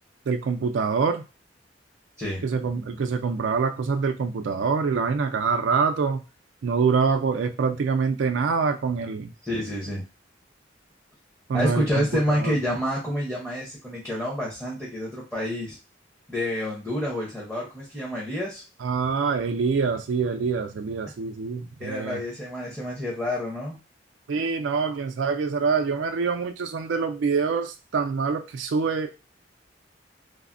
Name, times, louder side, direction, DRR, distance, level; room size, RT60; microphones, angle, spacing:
voice 1, 0.3-1.2 2.4-6.2 6.6-9.3 11.5-12.5 18.8-22.2 24.3-29.1, right 5 dB, 90° right, 5 dB, 0.4 m, -25 dB
voice 2, 9.4-10.0 11.5-15.8 16.3-18.6 21.8-23.8, left 1 dB, 5° left, -4 dB, 0.7 m, -28 dB
3.3 x 2.1 x 2.5 m, 0.30 s
head